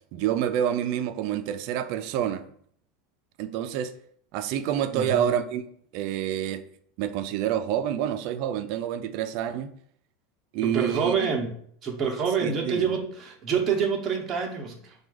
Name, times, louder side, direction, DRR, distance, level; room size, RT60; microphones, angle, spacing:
voice 1, 0.1-2.5 3.4-3.9 4.3-5.6 5.9-6.7 7.0-9.8 10.5-11.3 12.4-12.9, right 10 dB, 45° right, 0.4 m, -28 dB
voice 2, 4.9-5.3 10.6-11.5 11.8-14.9, right 6 dB, 20° right, 0.8 m, -27 dB
4.7 x 2.3 x 4.7 m
supercardioid pair, 170°, 0 cm